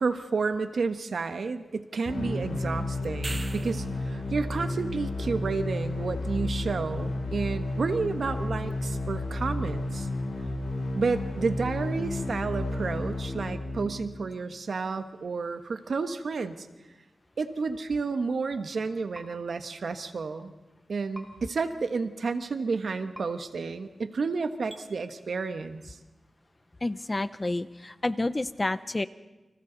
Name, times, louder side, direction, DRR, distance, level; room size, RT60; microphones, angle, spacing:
voice 1, 0.0-10.1 10.9-16.7 17.4-20.5 20.9-26.0, right 4 dB, 75° right, 8 dB, 1.3 m, -31 dB
sound 1, 2.1-14.0, left 2 dB, 75° left, 6.1 m, -32 dB
sound 2, 3.0-4.0 8.7-8.8, right 3 dB, 40° right, 1.1 m, -39 dB
sound 3, 19.1-19.3 21.1-21.3 23.1-23.3 24.7-24.8, right 1 dB, 10° right, 3.0 m, -43 dB
voice 2, 26.8-29.1, left 2 dB, 30° left, 14 dB, 0.7 m, -29 dB
29.5 x 25.5 x 4.0 m, 1.1 s
wide cardioid pair, 85°, 0 cm